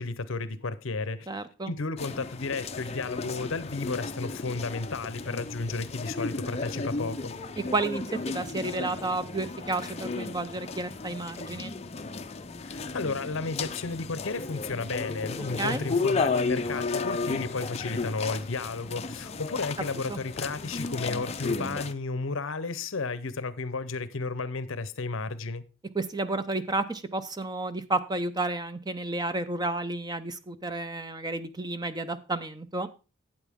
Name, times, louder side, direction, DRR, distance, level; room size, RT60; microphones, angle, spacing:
voice 1, 0.0-1.3 1.7-7.3 12.6-25.6, left 3 dB, 65° left, 0.7 m, -33 dB
voice 2, 1.3-1.7 7.7-11.7 15.6-15.9 20.1-20.2 25.9-32.9, right 2 dB, 20° right, 0.5 m, -31 dB
sound 1, 2.0-21.9, left 4 dB, 30° left, 0.5 m, -34 dB
12.0 x 8.3 x 3.6 m
head